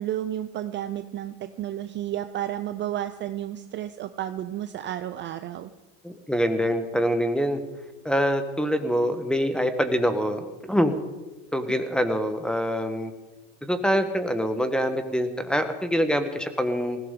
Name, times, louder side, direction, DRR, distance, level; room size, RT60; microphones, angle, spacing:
voice 1, 0.0-5.7, right 12 dB, 35° right, 10 dB, 0.5 m, -32 dB
voice 2, 6.0-7.6 8.0-10.9 11.5-13.1 13.6-17.0, equal, ahead, 8 dB, 1.2 m, -25 dB
19.5 x 16.0 x 3.8 m, 1.2 s
supercardioid pair, 130°, 35 cm